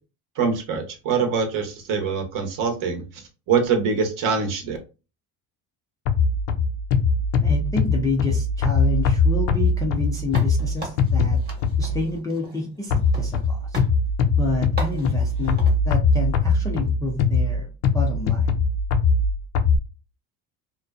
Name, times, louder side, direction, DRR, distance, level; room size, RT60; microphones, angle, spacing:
voice 1, 0.4-4.8, right 5 dB, 50° right, 4 dB, 0.9 m, -24 dB
sound 1, 6.1-12.1 12.9-19.8, left 4 dB, 70° left, 0.5 m, -21 dB
voice 2, 7.4-11.4 11.8-13.8 14.4-15.6 15.8-17.7 17.9-18.5, left 2 dB, 10° left, -2 dB, 0.3 m, -28 dB
sound 2, 10.3-13.5 13.7-14.0 14.8-15.8, right 1 dB, 25° right, 1.0 m, -37 dB
2.6 x 2.2 x 2.3 m, 0.31 s
supercardioid pair, 115°, 41 cm